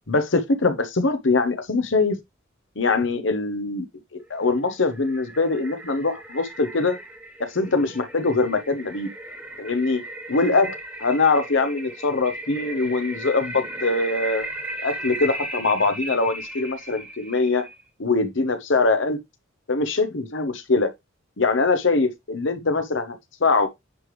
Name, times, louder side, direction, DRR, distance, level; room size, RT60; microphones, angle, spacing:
voice 1, 0.1-2.2 2.8-3.8 4.1-7.0 7.5-9.1 9.6-10.0 10.3-14.5 14.8-17.7 18.0-19.2 19.7-20.9 21.4-23.7, left 3 dB, 65° left, 0.9 m, -22 dB
sound 1, 4.4-17.8, right 1 dB, 10° right, 1.4 m, -36 dB
9.7 x 3.4 x 3.1 m
head